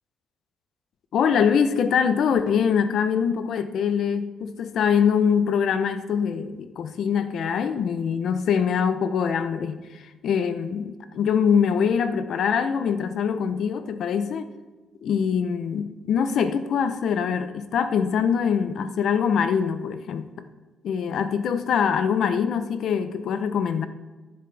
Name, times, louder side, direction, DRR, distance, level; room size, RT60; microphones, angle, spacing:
voice 1, 1.1-14.5 15.0-20.3 20.8-23.9, left 7 dB, 60° left, 10 dB, 0.7 m, -23 dB
11.0 x 10.5 x 3.4 m, 1.2 s
cardioid pair, 150°, 0 cm